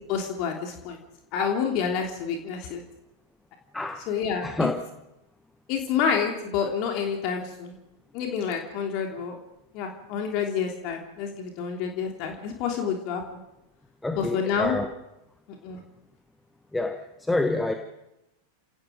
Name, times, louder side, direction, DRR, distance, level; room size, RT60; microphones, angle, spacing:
voice 1, 0.1-1.0 1.3-2.8 4.1-4.7 5.7-7.7 8.1-9.4 9.7-13.4 14.2-14.7 15.6-15.8, left 7 dB, 40° left, 3 dB, 3.1 m, -28 dB
voice 2, 3.7-4.1 4.4-4.8 14.0-14.9 16.7-17.7, left 2 dB, 5° left, 6 dB, 1.6 m, -27 dB
29.0 x 18.0 x 5.2 m, 0.88 s
figure-of-eight pair, 90°, 0 cm